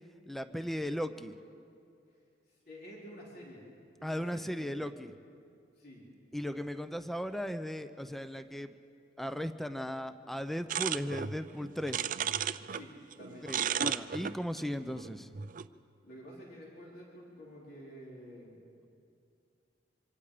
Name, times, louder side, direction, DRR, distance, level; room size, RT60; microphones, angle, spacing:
voice 1, 0.3-1.3 4.0-5.1 6.3-8.7 9.2-12.1 13.4-15.3, equal, ahead, 10 dB, 0.7 m, -37 dB
voice 2, 2.7-3.7 4.0-4.9 5.8-6.1 12.7-13.5 16.0-18.7, equal, 60° left, -4 dB, 4.5 m, -50 dB
sound 1, 10.7-12.8 13.1-15.7, right 8 dB, 50° right, 0.5 m, -34 dB
25.5 x 25.5 x 5.1 m, 2.4 s
head